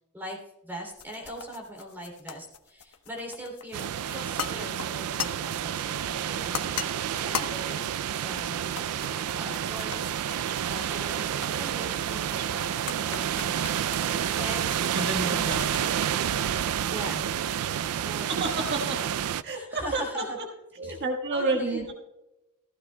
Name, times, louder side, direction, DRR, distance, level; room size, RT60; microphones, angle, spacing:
voice 1, 0.1-6.5 7.1-8.6 9.1-10.1 10.7-13.7 14.3-15.0 15.2-15.5 16.9-17.4 18.0-19.0 19.4-20.4 20.8-21.0 21.3-21.9, equal, 10° right, -1 dB, 2.9 m, -41 dB
sound 1, 0.9-17.3, left 7 dB, 85° left, 1.0 m, -40 dB
sound 2, 3.7-19.4, right 9 dB, 70° right, 0.4 m, -29 dB
voice 2, 14.9-15.9 18.0-19.0 19.4-20.4 20.8-21.9, right 2 dB, 50° right, 1 dB, 1.4 m, -30 dB
15.5 x 14.5 x 2.2 m, 0.94 s
head